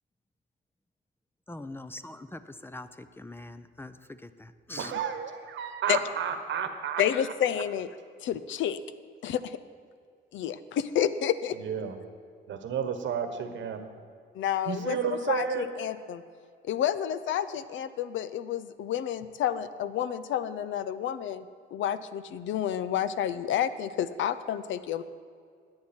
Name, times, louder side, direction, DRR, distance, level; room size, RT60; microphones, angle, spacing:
voice 1, 1.5-5.0, left 2 dB, 10° left, 11 dB, 0.6 m, -43 dB
voice 2, 4.8-7.0 11.6-11.9 12.5-13.8 14.7-15.7, right 7 dB, 70° right, 8 dB, 1.3 m, -31 dB
voice 3, 7.0-7.9 8.2-8.8 9.2-9.6 10.3-11.6 14.3-16.2 16.6-21.5 21.7-25.0, left 10 dB, 75° left, 14 dB, 0.6 m, -30 dB
17.0 x 9.6 x 4.4 m, 2.2 s
cardioid pair, 90°, 20 cm